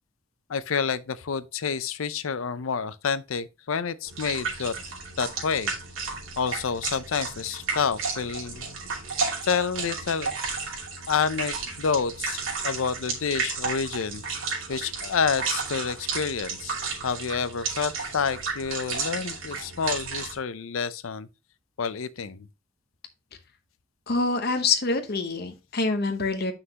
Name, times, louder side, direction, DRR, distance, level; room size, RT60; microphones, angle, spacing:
voice 1, 0.5-4.7 5.2-5.7 6.4-8.8 9.4-10.3 11.1-12.4 12.6-14.2 14.7-16.7 17.0-21.3 21.8-22.5, left 6 dB, 75° left, 0.6 m, -28 dB
sound 1, 4.1-20.3, right 4 dB, 70° right, 2.5 m, -33 dB
voice 2, 24.1-26.5, left 3 dB, 50° left, 0.9 m, -26 dB
7.8 x 5.9 x 2.9 m
head